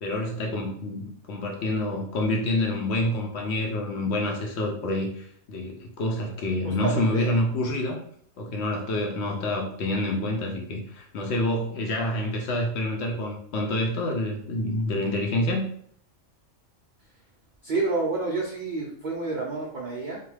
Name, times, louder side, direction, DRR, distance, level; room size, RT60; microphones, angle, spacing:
voice 1, 0.0-8.0 8.4-15.7, left 1 dB, 65° left, 1 dB, 0.7 m, -27 dB
voice 2, 6.6-7.3 17.6-20.2, right 3 dB, 70° right, -2 dB, 0.4 m, -29 dB
2.4 x 2.2 x 3.1 m, 0.62 s
omnidirectional pair, 1.3 m